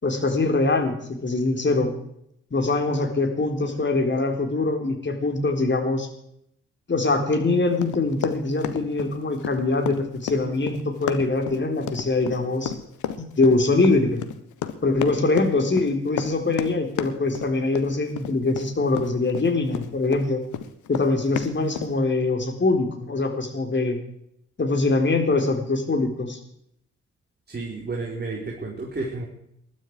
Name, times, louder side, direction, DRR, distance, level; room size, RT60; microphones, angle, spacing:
voice 1, 0.0-2.0 2.5-6.1 6.9-12.7 13.2-14.2 14.8-20.4 20.9-24.0 24.6-26.4, left 3 dB, 35° left, 4 dB, 4.1 m, -23 dB
Run, 7.8-20.2 20.5-21.9, left 10 dB, 65° left, 1.4 m, -32 dB
voice 2, 27.5-29.3, right 3 dB, 30° right, -2 dB, 4.5 m, -31 dB
20.5 x 12.5 x 4.9 m, 0.73 s
hypercardioid pair, 40°, 33 cm